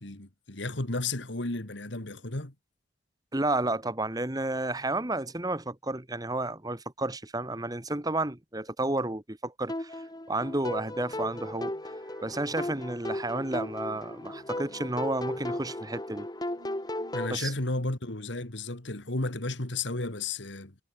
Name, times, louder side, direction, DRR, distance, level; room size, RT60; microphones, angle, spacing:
voice 1, 0.0-2.5 17.1-20.8, left 2 dB, 65° left, 2.4 m, -33 dB
voice 2, 3.3-11.8 12.2-16.3 17.3-17.5, right 2 dB, 20° right, 1.4 m, -31 dB
sound 1, 9.7-17.4, left 1 dB, 20° left, 1.4 m, -36 dB
sound 2, 10.4-17.6, right 1 dB, 65° right, 4.4 m, -58 dB
head